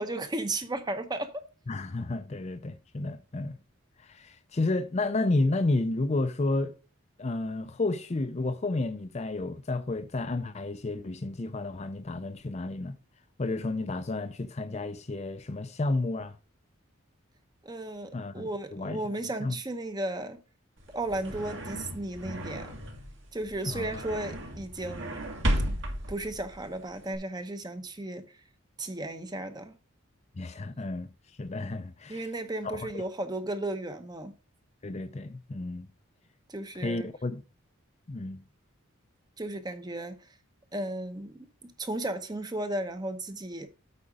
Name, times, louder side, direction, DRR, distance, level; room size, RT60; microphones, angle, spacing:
voice 1, 0.0-1.4 17.6-20.4 20.9-22.8 23.3-25.2 25.7-25.8 26.1-28.2 28.8-29.7 32.1-34.3 36.5-37.1 39.4-40.2 40.7-43.7, right 1 dB, 20° right, 0.8 m, -34 dB
voice 2, 1.7-3.6 4.0-6.7 7.2-13.0 13.4-16.4 18.1-19.0 19.4-19.6 23.6-23.9 30.4-31.1 31.4-32.3 32.6-33.0 34.8-35.9 36.7-37.4 38.1-38.4, left 2 dB, 30° left, 0.5 m, -31 dB
sound 1, 20.8-27.2, equal, 55° right, 1.8 m, -34 dB
8.6 x 4.9 x 5.0 m
head